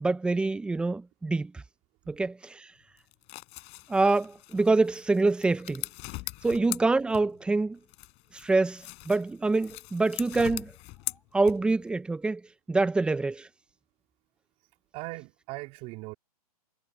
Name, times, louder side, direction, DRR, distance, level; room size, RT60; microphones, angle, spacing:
voice 1, 0.0-1.5 2.1-2.7 3.9-5.8 6.4-7.8 8.3-10.7 11.3-12.4 12.7-13.5, right 3 dB, 5° right, 0.7 m, -26 dB
sound 1, 3.0-7.5 7.9-11.9, left 25 dB, 35° left, 6.5 m, -41 dB
voice 2, 14.9-16.1, right 22 dB, 30° right, 3.5 m, -39 dB
hypercardioid pair, 140°, 20 cm